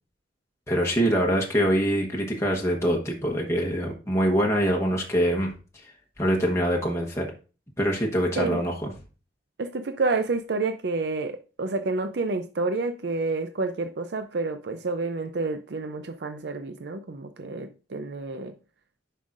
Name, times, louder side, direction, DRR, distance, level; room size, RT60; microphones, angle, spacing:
voice 1, 0.7-5.5 6.2-7.3 7.8-8.9, equal, 15° left, 1.0 m, -24 dB
voice 2, 9.6-18.5, right 3 dB, 65° right, 0.5 m, -29 dB
9.9 x 5.6 x 2.5 m
head